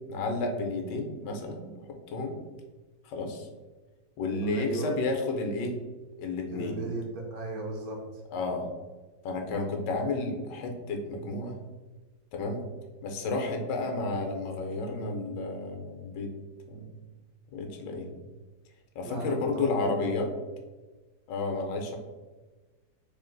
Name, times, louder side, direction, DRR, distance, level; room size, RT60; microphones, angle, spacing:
voice 1, 0.1-1.7 2.1-2.4 3.1-3.5 4.2-5.8 6.2-6.8 8.3-8.7 9.2-11.6 12.3-12.6 13.0-16.3 16.7-16.9 17.5-18.1 19.0-20.3 21.3-22.0, left 3 dB, 80° left, 3 dB, 1.2 m, -31 dB
voice 2, 4.4-4.9 6.5-8.0 19.0-20.0, right 2 dB, 65° right, -2 dB, 1.0 m, -36 dB
3.6 x 2.4 x 3.7 m, 1.3 s
omnidirectional pair, 1.9 m